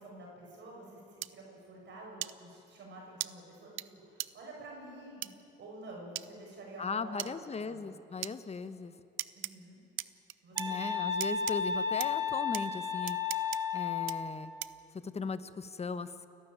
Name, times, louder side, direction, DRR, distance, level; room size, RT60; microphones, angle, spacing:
voice 1, 0.0-5.3 5.6-7.3 7.6-7.9 9.3-9.8 10.4-10.8, right 2 dB, 65° right, -2 dB, 6.6 m, -49 dB
sound 1, 1.2-1.3 2.2-2.3 3.2-3.3 3.8-3.9 4.2-4.3 5.2-5.3 6.2-6.3 7.2-7.3 8.2-8.3 9.2-9.5 10.0-10.7 11.2-11.6 12.0-12.1 12.5-12.6 13.1-13.6 14.1-14.2 14.6-14.8, right 16 dB, 85° right, 0.6 m, -37 dB
voice 2, 6.8-8.9 10.6-13.2 13.7-14.5 14.9-16.3, left 4 dB, 30° left, 12 dB, 1.1 m, -38 dB
sound 2, 10.6-14.2, left 6 dB, 20° right, 2.4 m, -33 dB
29.5 x 12.5 x 8.9 m, 2.7 s
cardioid pair, 90°, 20 cm